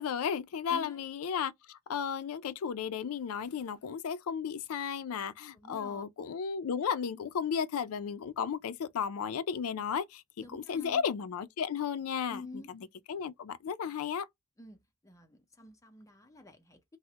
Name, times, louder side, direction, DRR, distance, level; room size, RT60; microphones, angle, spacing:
voice 1, 0.0-14.3, left 7 dB, 85° left, 0.4 m, -34 dB
voice 2, 0.7-1.0 5.5-6.0 10.4-11.0 12.3-12.7 14.6-17.0, left 2 dB, 15° left, 0.5 m, -48 dB
3.3 x 2.0 x 2.8 m
head